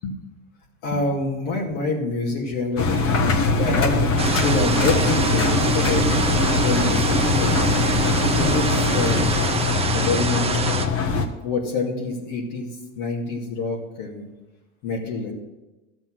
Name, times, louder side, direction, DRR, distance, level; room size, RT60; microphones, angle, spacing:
voice 1, 0.8-6.1 6.5-7.8 8.1-9.3 9.9-10.9 11.4-14.3 14.8-15.3, left 3 dB, 60° left, -1 dB, 2.5 m, -27 dB
Engine, 2.8-11.3, left 3 dB, 35° left, 1.4 m, -21 dB
sound 1, 4.2-10.9, right 5 dB, 15° right, 0.8 m, -26 dB
12.5 x 7.8 x 6.1 m, 1.1 s
hypercardioid pair, 105°, 38 cm